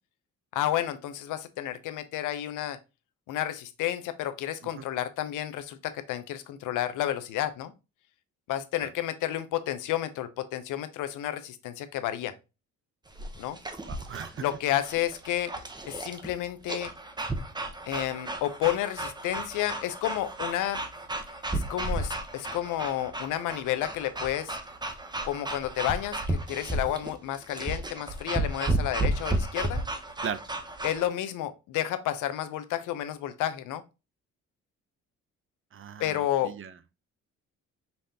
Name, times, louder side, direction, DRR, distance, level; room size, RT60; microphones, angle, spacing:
voice 1, 0.5-2.8 3.3-7.7 8.5-12.3 13.4-13.6 14.4-15.5 15.8-16.9 17.9-20.8 21.5-24.6 25.2-29.8 30.8-33.8 36.0-36.5, left 12 dB, 85° left, 0.7 m, -31 dB
sound 1, 13.1-31.1, right 2 dB, 15° right, 0.8 m, -33 dB
voice 2, 13.8-14.4 26.8-26.9 30.2-30.4 35.7-36.7, right 7 dB, 45° right, 0.6 m, -38 dB
5.6 x 3.3 x 2.7 m
cardioid pair, 90°, 30 cm